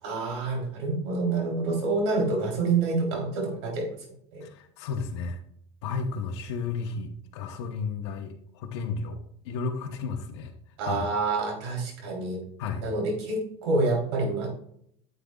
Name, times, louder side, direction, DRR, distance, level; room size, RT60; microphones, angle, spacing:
voice 1, 0.0-3.9 4.3-4.4 10.8-12.4 12.8-14.5, right 3 dB, 80° right, 0 dB, 3.4 m, -27 dB
voice 2, 4.4-5.4 5.8-9.2 9.4-10.5 10.8-11.1 12.6-12.8, left 5 dB, 80° left, 3 dB, 1.1 m, -33 dB
10.0 x 7.8 x 2.4 m, 0.68 s
supercardioid pair, 105°, 14 cm